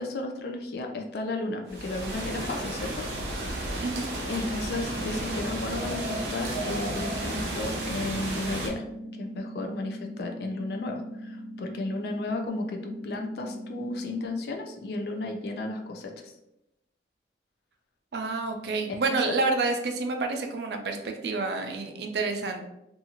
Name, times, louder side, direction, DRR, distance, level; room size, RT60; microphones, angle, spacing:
voice 1, 0.0-3.0 3.5-3.8 4.3-8.8 9.2-16.3 19.1-19.3, left 2 dB, 60° left, 3 dB, 0.4 m, -34 dB
sound 1, 1.7-8.7, right 1 dB, 90° right, 0.7 m, -33 dB
voice 2, 3.8-4.1 18.1-22.6, right 3 dB, 65° right, 4 dB, 0.4 m, -29 dB
sound 2, 4.3-14.3, equal, 15° left, 0.9 m, -41 dB
2.6 x 2.4 x 2.8 m, 0.87 s
head